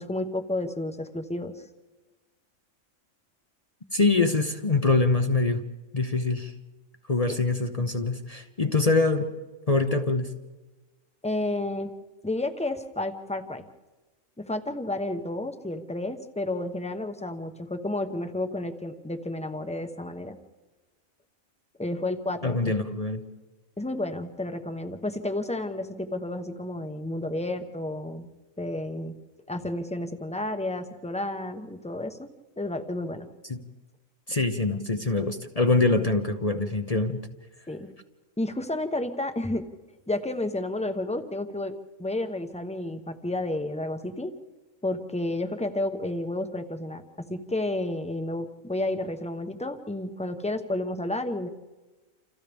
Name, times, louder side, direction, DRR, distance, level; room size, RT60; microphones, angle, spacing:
voice 1, 0.0-1.5 11.2-11.9 12.2-13.7 14.4-20.4 21.8-22.7 23.8-28.3 28.6-29.2 29.5-32.3 32.6-33.3 37.7-37.9 38.4-39.6 40.1-41.7 42.0-44.3 44.8-51.5, left 1 dB, 5° left, 7 dB, 0.9 m, -31 dB
voice 2, 3.9-5.6 5.9-6.5 7.1-9.3 9.7-10.3 22.4-23.2 33.5-33.6 34.3-37.2, left 3 dB, 30° left, 6 dB, 0.9 m, -24 dB
29.0 x 27.5 x 3.6 m, 1.2 s
omnidirectional pair, 1.4 m